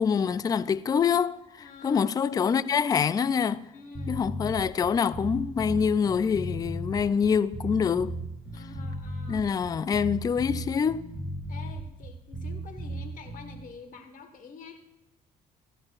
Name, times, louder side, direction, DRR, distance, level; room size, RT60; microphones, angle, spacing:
voice 1, 0.0-3.7 4.1-8.1 9.3-11.1, left 6 dB, 20° left, 0.3 m, -25 dB
voice 2, 1.6-2.0 3.7-4.2 8.5-9.4 11.5-14.8, left 5 dB, 50° left, 1.4 m, -47 dB
sound 1, 3.9-13.6, right 1 dB, 5° right, 3.2 m, -36 dB
16.0 x 13.0 x 2.4 m
cardioid pair, 110°, 17 cm